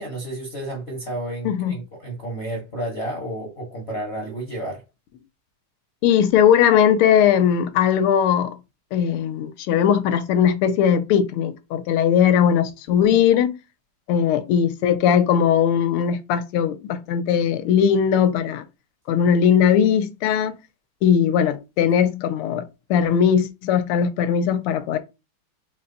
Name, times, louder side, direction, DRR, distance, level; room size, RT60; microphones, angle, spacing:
voice 1, 0.0-4.8, right 1 dB, 40° left, 0.9 m, -31 dB
voice 2, 1.4-1.8 6.0-8.6 8.9-13.6 14.1-18.6 19.1-20.6 21.0-22.6 22.9-25.0, left 8 dB, 85° left, 1.5 m, -19 dB
4.3 x 2.2 x 3.8 m
omnidirectional pair, 2.4 m